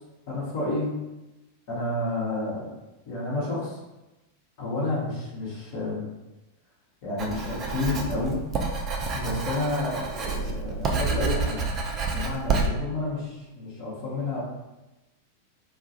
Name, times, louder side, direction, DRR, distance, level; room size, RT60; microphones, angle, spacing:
voice 1, 0.3-0.9 1.7-2.7 3.1-3.8 4.6-6.1 7.0-8.4 9.1-11.7 12.1-14.4, left 2 dB, 50° left, -7 dB, 0.8 m, -30 dB
Writing, 7.2-12.7, right 4 dB, 30° right, 0.3 m, -28 dB
2.2 x 2.0 x 2.7 m, 1.0 s
figure-of-eight pair, 90°, 0 cm